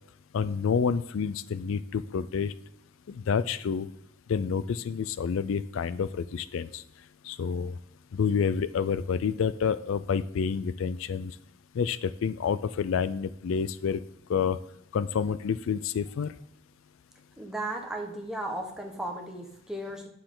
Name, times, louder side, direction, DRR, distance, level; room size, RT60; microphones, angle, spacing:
voice 1, 0.3-2.5 3.1-3.9 4.3-6.8 7.2-7.7 8.1-11.4 11.7-14.0 14.3-14.6 14.9-16.3, left 6 dB, 70° left, 15 dB, 0.3 m, -28 dB
voice 2, 17.4-20.1, right 1 dB, 5° right, 0 dB, 1.2 m, -35 dB
9.8 x 6.7 x 3.8 m, 0.76 s
head